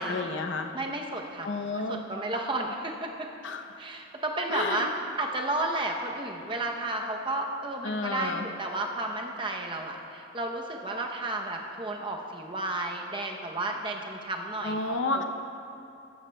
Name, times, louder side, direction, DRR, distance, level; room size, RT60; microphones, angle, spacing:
voice 1, 0.0-0.7 1.4-2.0 3.4-3.7 4.5-4.9 7.8-8.5 14.6-15.2, left 3 dB, 60° left, 5 dB, 0.6 m, -31 dB
voice 2, 0.7-3.3 3.8-15.2, right 2 dB, 25° right, 1 dB, 0.7 m, -32 dB
14.5 x 11.5 x 2.2 m, 2.7 s
head